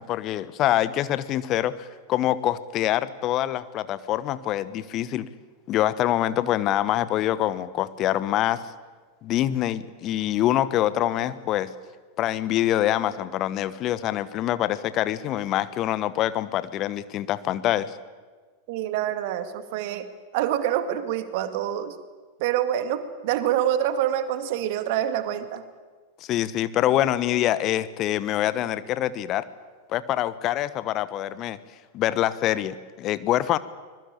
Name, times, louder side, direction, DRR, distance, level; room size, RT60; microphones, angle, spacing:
voice 1, 0.0-5.3 5.7-8.6 9.2-11.7 12.2-17.9 26.2-29.4 29.9-31.6 31.9-33.6, left 13 dB, 35° left, 15 dB, 1.2 m, -25 dB
voice 2, 18.7-22.0 22.4-25.6, right 11 dB, 50° right, 11 dB, 1.9 m, -26 dB
25.0 x 21.5 x 8.8 m, 1.4 s
figure-of-eight pair, 90°, 0 cm